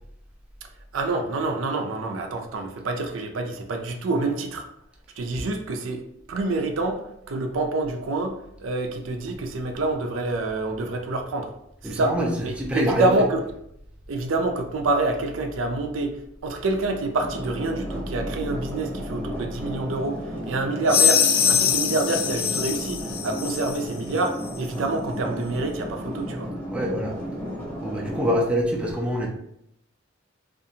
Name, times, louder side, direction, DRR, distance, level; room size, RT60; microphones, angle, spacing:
voice 1, 0.9-4.7 5.2-11.5 11.8-12.2 12.4-13.4 14.1-26.5, right 2 dB, 75° right, 5 dB, 0.4 m, -27 dB
voice 2, 11.8-12.3 12.6-13.1 26.7-27.2 27.8-29.3, equal, 5° right, 0 dB, 0.3 m, -25 dB
sound 1, 17.2-28.4, equal, 10° left, 0.8 m, -34 dB
sound 2, 20.9-23.9, left 8 dB, 85° left, 0.4 m, -22 dB
2.7 x 2.4 x 2.6 m, 0.77 s
head